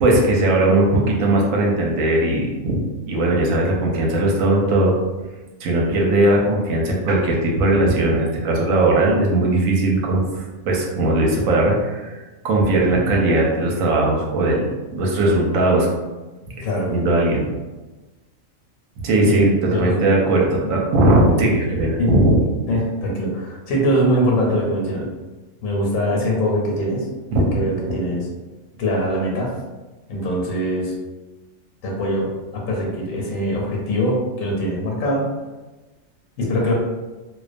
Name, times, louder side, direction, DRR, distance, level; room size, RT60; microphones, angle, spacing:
voice 1, 0.0-4.9 5.6-15.9 16.9-17.4 19.0-22.4 27.3-28.0, right 2 dB, 85° right, -1 dB, 1.0 m, -19 dB
voice 2, 22.7-25.1 25.6-27.1 27.5-28.3 28.8-29.5 30.1-30.9 31.8-35.3 36.4-36.7, equal, 85° left, -2 dB, 1.1 m, -22 dB
2.4 x 2.2 x 2.5 m, 1.2 s
omnidirectional pair, 1.4 m